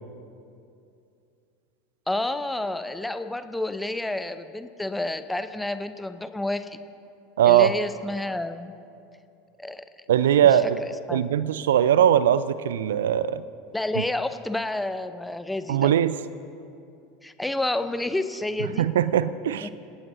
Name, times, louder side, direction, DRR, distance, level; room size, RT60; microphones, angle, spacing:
voice 1, 2.1-6.8 7.4-8.7 9.6-9.8 10.8-11.2 13.7-16.0 17.2-18.9 19.6-19.7, left 2 dB, 5° left, 11 dB, 0.8 m, -30 dB
voice 2, 7.4-7.7 10.1-10.8 11.1-13.4 14.0-14.1 15.7-16.2 18.8-19.7, right 10 dB, 70° right, 16 dB, 0.5 m, -20 dB
28.0 x 18.0 x 2.7 m, 2.5 s
figure-of-eight pair, 80°, 0 cm